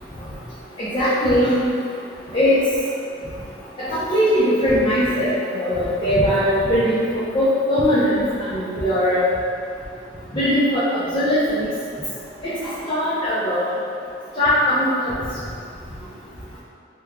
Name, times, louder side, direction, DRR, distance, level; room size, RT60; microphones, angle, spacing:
voice 1, 0.8-1.5 2.3-2.6 3.9-8.2 8.5-9.3 10.3-11.7 12.4-13.7 14.4-15.1, equal, 25° left, -12 dB, 0.6 m, -20 dB
3.0 x 2.3 x 3.5 m, 2.4 s
head